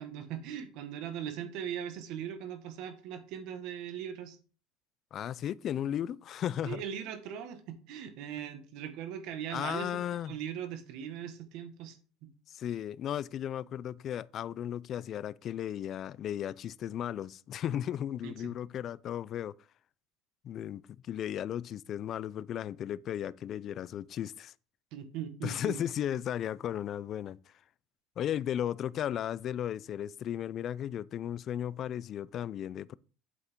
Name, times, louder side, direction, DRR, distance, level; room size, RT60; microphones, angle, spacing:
voice 1, 0.0-4.4 6.6-9.9 10.2-12.3 18.2-18.5 24.9-25.8, right 9 dB, 60° right, 1.5 m, -40 dB
voice 2, 5.1-6.8 9.5-10.4 12.5-19.5 20.4-24.5 25.4-27.4 28.2-33.0, left 10 dB, 35° left, 0.3 m, -35 dB
8.4 x 7.8 x 3.6 m
cardioid pair, 160°, 0 cm